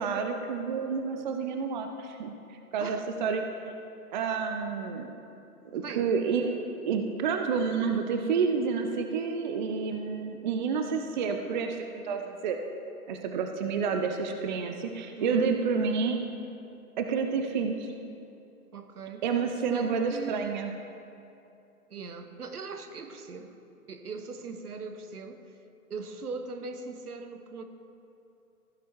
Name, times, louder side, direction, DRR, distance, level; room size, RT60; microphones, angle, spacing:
voice 1, 0.0-2.3 2.7-3.4 4.1-5.1 5.6-6.6 6.8-12.6 13.1-16.2 17.0-17.9 19.2-20.7, right 5 dB, 30° right, 5 dB, 0.6 m, -29 dB
voice 2, 5.7-6.1 15.2-15.5 18.7-19.2 19.6-20.6 21.9-23.6 23.9-25.4 25.9-27.6, right 4 dB, 75° right, 7 dB, 1.1 m, -40 dB
15.5 x 6.9 x 4.6 m, 2.7 s
figure-of-eight pair, 125°, 45 cm